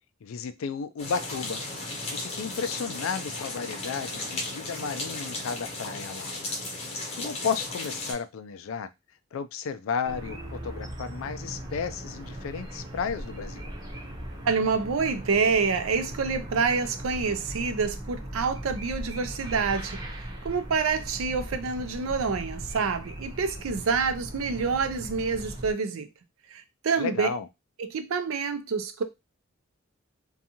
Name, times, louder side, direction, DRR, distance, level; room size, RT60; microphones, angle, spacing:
voice 1, 0.2-1.6 2.1-6.4 7.2-8.9 9.3-13.7 27.0-27.5, left 6 dB, 75° left, 0.3 m, -33 dB
sound 1, 1.0-8.1, left 2 dB, 30° left, 0.7 m, -35 dB
sound 2, 10.0-25.7, right 1 dB, 20° right, 0.6 m, -39 dB
voice 2, 14.5-26.1 26.5-27.3 27.8-29.0, right 5 dB, 90° right, 0.5 m, -27 dB
2.6 x 2.3 x 2.8 m
head